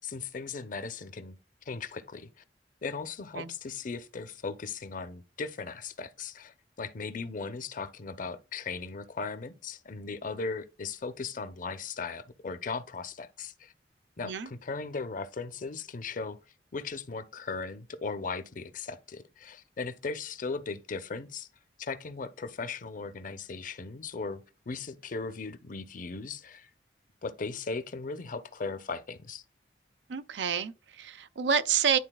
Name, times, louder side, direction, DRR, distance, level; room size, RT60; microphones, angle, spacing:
voice 1, 0.0-1.4 1.7-2.3 2.8-13.7 14.2-16.4 16.7-21.5 21.8-26.7 27.2-29.4, left 4 dB, 50° left, 0.6 m, -37 dB
voice 2, 30.1-32.0, right 7 dB, 85° right, 0.5 m, -28 dB
11.0 x 4.0 x 2.3 m
head